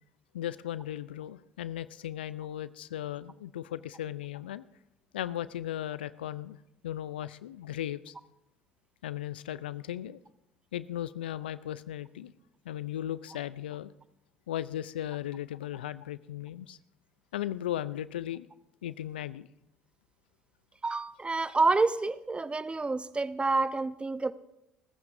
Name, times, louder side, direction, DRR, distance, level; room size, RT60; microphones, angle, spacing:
voice 1, 0.3-4.6 5.1-6.6 6.8-8.1 9.0-10.2 10.7-12.3 12.7-13.9 14.5-16.8 17.3-18.5 18.8-19.5, left 12 dB, 80° left, 17 dB, 0.4 m, -36 dB
voice 2, 20.8-24.3, right 3 dB, 20° right, 15 dB, 0.8 m, -28 dB
30.0 x 15.0 x 2.6 m, 0.88 s
hypercardioid pair, 55°, 5 cm